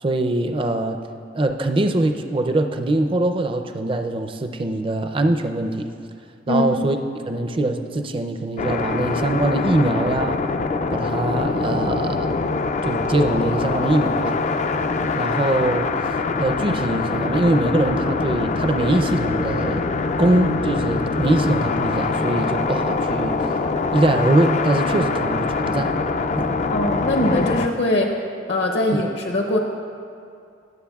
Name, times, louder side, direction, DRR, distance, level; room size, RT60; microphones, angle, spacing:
voice 1, 0.0-1.0 1.3-5.9 6.5-7.0 7.3-10.4 10.9-12.3 12.8-14.4 15.1-15.9 16.4-19.8 20.2-23.5 23.9-25.9 26.4-26.5 28.9-29.0, right 1 dB, 30° right, 6 dB, 0.5 m, -22 dB
sound 1, 8.6-27.7, left 4 dB, 40° left, 0.3 m, -24 dB
voice 2, 26.7-28.1 28.5-29.6, left 1 dB, 65° left, 1 dB, 0.8 m, -21 dB
19.0 x 7.6 x 2.3 m, 2.4 s
head